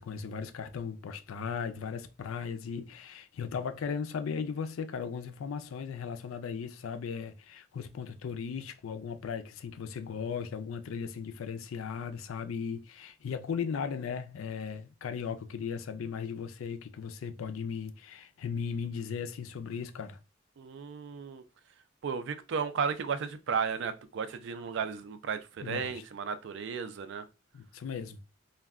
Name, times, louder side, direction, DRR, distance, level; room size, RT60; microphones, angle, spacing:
voice 1, 0.0-20.2 25.6-26.0 27.5-28.2, left 6 dB, 85° left, 0.4 m, -37 dB
voice 2, 20.6-21.4 22.0-27.2, right 6 dB, 60° right, 0.4 m, -34 dB
2.2 x 2.1 x 3.5 m
head